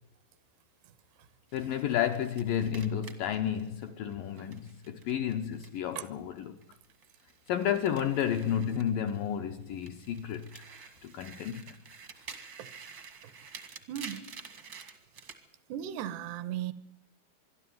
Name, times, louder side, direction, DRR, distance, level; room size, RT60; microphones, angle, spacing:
voice 1, 1.5-6.6 7.5-10.6 11.0-11.8, left 9 dB, 75° left, 2.1 m, -31 dB
sound 1, 1.5-6.1 6.4-9.3 9.7-15.4, right 6 dB, 55° right, 1.3 m, -50 dB
voice 2, 13.9-14.3 15.7-16.7, right 11 dB, 75° right, 3.0 m, -36 dB
23.5 x 13.0 x 9.3 m
omnidirectional pair, 4.9 m